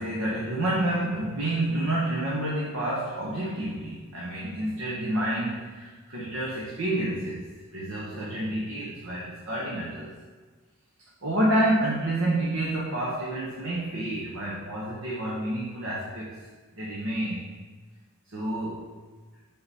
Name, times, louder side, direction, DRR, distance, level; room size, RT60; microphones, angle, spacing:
voice 1, 0.0-10.1 11.2-16.4 16.8-17.5 18.3-18.9, right 1 dB, 60° right, -5 dB, 0.9 m, -29 dB
6.8 x 3.8 x 4.1 m, 1.4 s
head